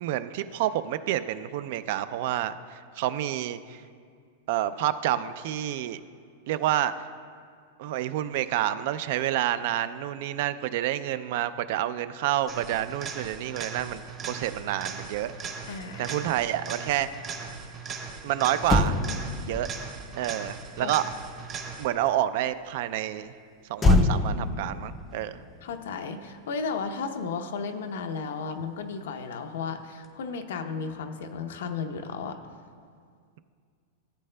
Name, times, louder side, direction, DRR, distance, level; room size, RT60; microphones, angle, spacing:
voice 1, 0.0-3.8 4.5-6.0 6.5-7.1 7.8-14.0 14.3-15.3 16.0-17.1 18.2-19.0 19.5-19.7 20.2-21.0 21.8-23.3 23.7-25.5, right 12 dB, 50° right, 13 dB, 0.3 m, -28 dB
sound 1, 12.5-22.1 30.0-30.1, right 5 dB, 25° right, 0.8 m, -39 dB
voice 2, 15.7-16.2 20.8-20.9 25.6-32.4, left 5 dB, 75° left, 6 dB, 0.7 m, -34 dB
Motor vehicle (road), 18.2-18.3 18.6-22.1 23.8-26.4 26.6-26.9, left 2 dB, 15° left, 0.4 m, -27 dB
14.5 x 8.5 x 2.2 m, 2.1 s
supercardioid pair, 165°, 0 cm